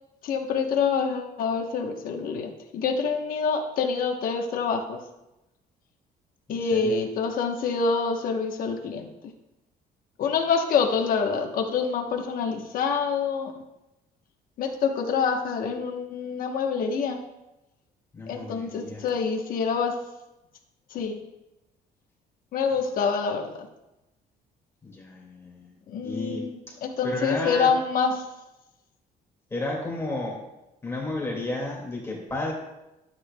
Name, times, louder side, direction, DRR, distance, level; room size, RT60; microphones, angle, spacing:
voice 1, 0.2-5.0 6.5-9.1 10.2-13.5 14.6-17.2 18.3-19.9 20.9-21.2 22.5-23.6 25.9-28.1, left 5 dB, 55° left, 3 dB, 1.0 m, -26 dB
voice 2, 6.5-6.9 18.1-19.1 22.8-23.0 24.8-25.7 26.0-26.8 27.0-27.7 29.5-30.4 30.8-32.5, left 2 dB, 15° left, -2 dB, 2.0 m, -32 dB
13.0 x 8.5 x 2.2 m, 0.95 s
cardioid pair, 165°, 17 cm